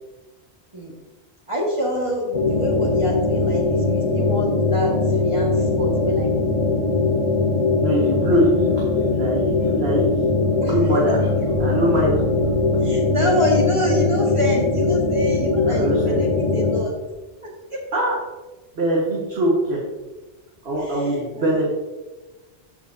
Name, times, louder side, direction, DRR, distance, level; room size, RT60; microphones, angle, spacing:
voice 1, 1.5-4.9 5.2-6.5 10.6-10.8 12.8-16.9 17.7-17.8 20.8-21.6, equal, 25° right, -3 dB, 1.8 m, -27 dB
sound 1, 2.3-16.8, left 3 dB, 35° left, 1.0 m, -20 dB
voice 2, 7.8-10.3 10.7-11.2 11.6-12.2 15.7-16.3 17.9-18.2 18.8-19.8 20.6-21.6, right 1 dB, 70° right, -4 dB, 1.8 m, -22 dB
13.5 x 6.0 x 2.7 m, 1.1 s
omnidirectional pair, 1.1 m